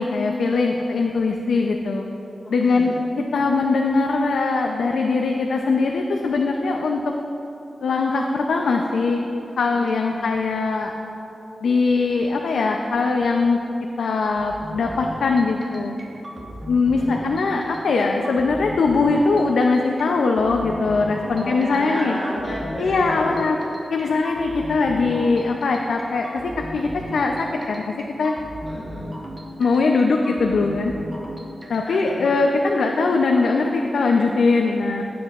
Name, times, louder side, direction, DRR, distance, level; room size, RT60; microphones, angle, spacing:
voice 1, 0.0-2.1 2.5-2.9 3.3-7.0 7.8-9.3 9.6-10.9 11.6-13.6 14.0-16.0 16.7-22.2 22.8-23.6 23.9-26.3 26.6-28.3 29.6-30.9 31.7-35.0, left 3 dB, 80° left, 2 dB, 0.5 m, -21 dB
voice 2, 2.6-3.0 9.7-10.3 16.9-17.3 21.3-23.4 28.6-29.1 31.8-32.4, left 1 dB, 35° left, -11 dB, 1.9 m, -33 dB
sound 1, 14.2-32.4, equal, 35° right, 1.2 m, -37 dB
15.5 x 7.7 x 2.4 m, 3.0 s
wide cardioid pair, 130°, 0 cm